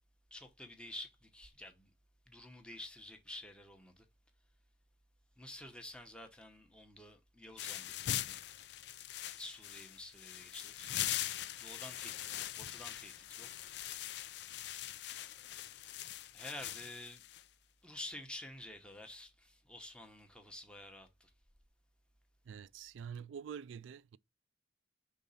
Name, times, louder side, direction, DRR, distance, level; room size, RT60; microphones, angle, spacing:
voice 1, 0.3-1.9 2.3-4.1 5.4-8.4 9.4-11.0 11.6-14.0 16.3-17.2 17.8-21.3, left 1 dB, 5° left, 0.9 m, -50 dB
sound 1, 7.6-17.4, left 12 dB, 60° left, 0.4 m, -42 dB
voice 2, 22.5-24.2, right 7 dB, 70° right, 0.3 m, -46 dB
5.4 x 3.8 x 5.5 m
head